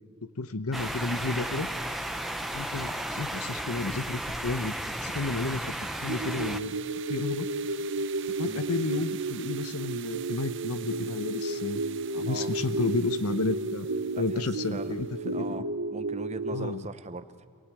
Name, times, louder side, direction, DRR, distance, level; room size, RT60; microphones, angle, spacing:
voice 1, 0.2-1.7 2.5-4.7 5.0-5.6 6.0-6.7 7.1-7.5 8.4-11.8 12.1-13.9 14.2-15.6 16.5-16.8, left 3 dB, 85° left, 11 dB, 0.9 m, -32 dB
sound 1, 0.7-6.6, equal, ahead, 0.6 m, -34 dB
sound 2, 0.7-15.5, right 11 dB, 55° right, 0.8 m, -46 dB
sound 3, 6.1-16.8, right 2 dB, 85° right, 1.0 m, -33 dB
voice 2, 14.7-15.7 15.9-17.5, right 2 dB, 30° right, 10 dB, 0.9 m, -40 dB
26.5 x 16.5 x 9.8 m, 2.4 s
head